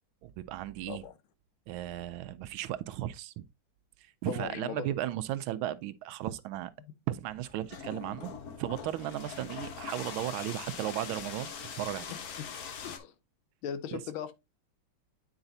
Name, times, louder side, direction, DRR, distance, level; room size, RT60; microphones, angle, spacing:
voice 1, 0.2-1.0 1.7-3.5 4.2-6.7 7.1-12.1 13.9-14.0, right 13 dB, 80° right, 1.3 m, -35 dB
voice 2, 4.3-4.9 12.4-12.5 12.8-13.1 13.6-14.3, left 9 dB, 75° left, 1.6 m, -38 dB
sound 1, 7.2-13.0, left 6 dB, 55° left, 1.2 m, -42 dB
8.8 x 4.9 x 2.6 m
omnidirectional pair, 2.3 m